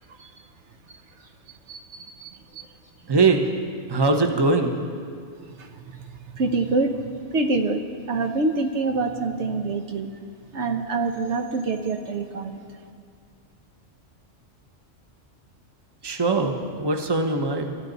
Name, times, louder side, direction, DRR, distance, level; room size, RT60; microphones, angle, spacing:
voice 1, 1.7-2.6 5.6-5.7 6.3-7.0 7.3-7.8 8.1-10.1 10.5-12.6, right 3 dB, 65° right, 5 dB, 1.1 m, -26 dB
voice 2, 3.1-3.5 3.9-4.7 16.0-17.7, right 3 dB, 20° right, 4 dB, 1.0 m, -21 dB
26.0 x 13.0 x 4.0 m, 2.1 s
omnidirectional pair, 1.3 m